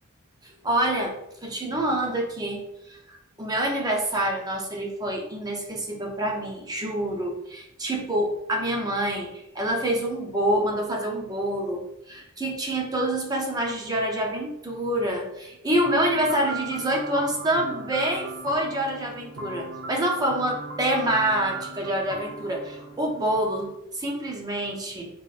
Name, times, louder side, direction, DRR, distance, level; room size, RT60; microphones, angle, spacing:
voice 1, 0.4-1.1 1.4-2.6 2.9-11.8 12.1-25.1, right 1 dB, 20° right, 0 dB, 0.6 m, -27 dB
sound 1, 15.8-23.7, right 3 dB, 90° right, 0.6 m, -38 dB
3.9 x 3.0 x 2.4 m, 0.83 s
head